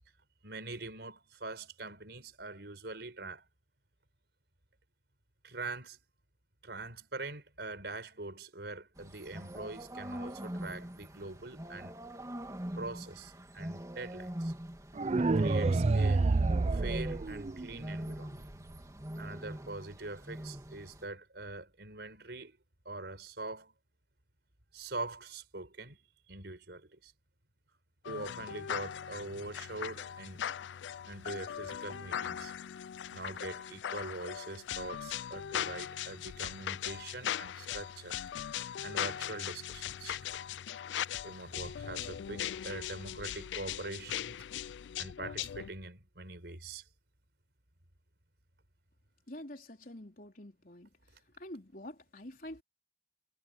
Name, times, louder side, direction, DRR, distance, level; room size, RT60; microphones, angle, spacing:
voice 1, 0.4-3.5 5.4-6.0 6.6-11.9 12.7-14.5 15.2-16.2 16.7-18.5 19.2-22.6 22.8-23.7 24.7-26.0 26.3-27.1 28.0-30.5 31.0-32.5 33.1-38.1 38.8-40.2 41.2-44.4 45.0-46.9, right 2 dB, 70° right, 4.6 m, -43 dB
sound 1, 9.0-21.0, equal, 20° right, 2.9 m, -42 dB
sound 2, 15.0-18.0, right 3 dB, 35° right, 0.4 m, -28 dB
sound 3, 28.0-45.7, left 10 dB, 90° left, 0.4 m, -39 dB
voice 2, 49.3-51.0 51.4-52.6, left 1 dB, 50° left, 3.9 m, -47 dB
head